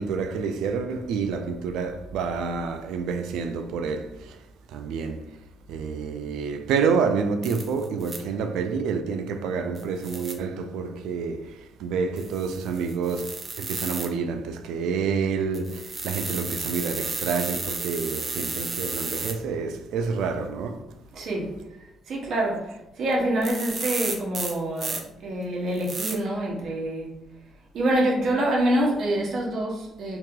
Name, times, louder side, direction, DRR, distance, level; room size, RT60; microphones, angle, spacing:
voice 1, 0.0-5.3 5.7-20.8, right 5 dB, 90° right, 0.4 m, -28 dB
sound 1, 7.4-8.2 9.7-10.3 12.2-14.1 15.5-19.3 23.1-23.2 23.4-25.0 25.8-26.1, right 3 dB, 35° right, 0.7 m, -33 dB
voice 2, 21.1-27.2 27.7-30.2, right 1 dB, 65° right, 1.1 m, -26 dB
2.9 x 2.8 x 3.7 m
cardioid pair, 90°, 0 cm